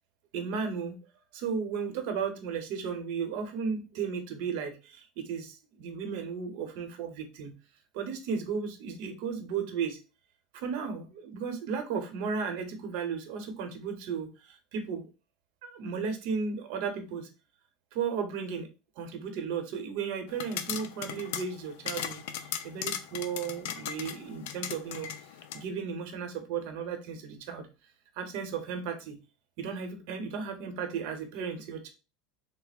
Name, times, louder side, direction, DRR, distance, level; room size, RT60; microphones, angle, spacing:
voice 1, 0.3-1.0 1.3-7.5 7.9-10.0 10.5-15.1 15.6-17.3 17.9-18.7 19.0-25.1 25.5-27.7 28.1-29.2 29.6-31.9, right 6 dB, 60° right, 6 dB, 0.8 m, -35 dB
sound 1, 20.3-25.6, left 9 dB, 75° left, 0.4 m, -38 dB
3.3 x 2.0 x 4.1 m, 0.31 s
cardioid pair, 165°, 0 cm